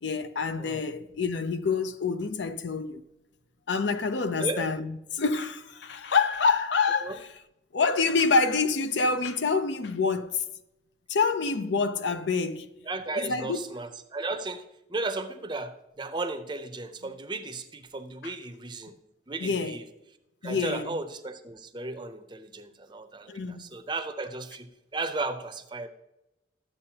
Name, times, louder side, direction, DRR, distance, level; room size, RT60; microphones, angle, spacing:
voice 1, 0.0-3.0 3.7-7.3 7.7-10.4 11.1-12.7 13.2-13.6 18.2-18.3 19.4-19.8 20.4-21.0 23.3-23.6, left 4 dB, 75° left, 0.5 m, -27 dB
voice 2, 12.9-14.6 14.9-18.9 19.3-19.8 20.4-25.9, right 3 dB, 25° right, 0.6 m, -35 dB
12.0 x 7.6 x 2.8 m
head